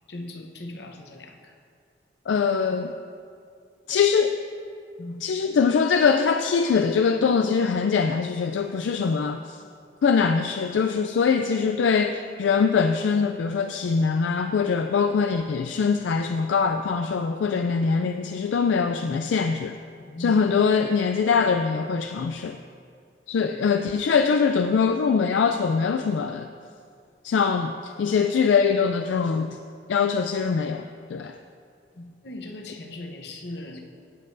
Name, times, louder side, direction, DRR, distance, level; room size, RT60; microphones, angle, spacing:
voice 1, 0.1-1.6 5.0-5.2 20.0-20.4 31.9-33.8, left 1 dB, 65° left, 3 dB, 0.9 m, -38 dB
voice 2, 2.3-2.9 3.9-4.4 5.2-9.6 10.0-19.8 20.2-22.6 23.3-26.5 27.2-29.6 29.9-31.4, left 5 dB, 80° left, 6 dB, 0.3 m, -23 dB
16.0 x 7.4 x 2.6 m, 2.3 s
head